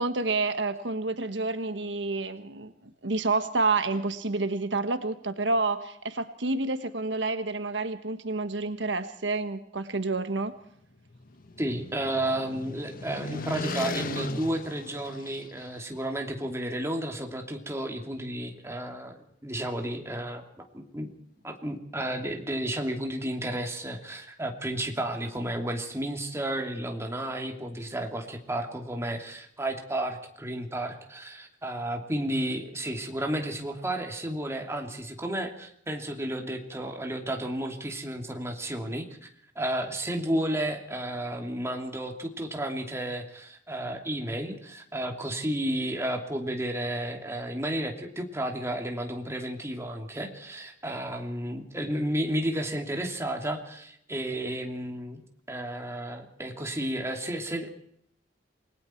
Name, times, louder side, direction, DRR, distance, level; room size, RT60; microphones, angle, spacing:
voice 1, 0.0-2.7 3.0-10.5, right 3 dB, 75° right, 10 dB, 1.4 m, -29 dB
sound 1, 11.0-15.8, left 3 dB, 50° left, 1.5 m, -37 dB
voice 2, 11.6-21.1 21.4-39.3 39.5-55.2 55.5-57.7, right 1 dB, 15° right, 3 dB, 2.8 m, -32 dB
28.5 x 20.5 x 4.5 m, 0.69 s
head